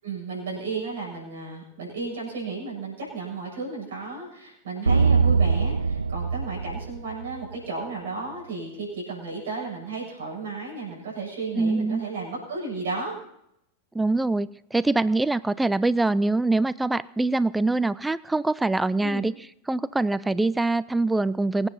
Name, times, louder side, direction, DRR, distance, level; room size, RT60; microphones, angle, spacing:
voice 1, 0.0-13.2 19.0-19.3, right 3 dB, 60° right, -2 dB, 7.2 m, -34 dB
sound 1, 4.9-7.5, right 5 dB, 80° right, 0.5 m, -22 dB
voice 2, 11.6-12.0 13.9-19.3 19.7-21.7, right 2 dB, 5° right, 19 dB, 0.4 m, -24 dB
23.5 x 9.4 x 4.2 m, 0.75 s
figure-of-eight pair, 90°, 0 cm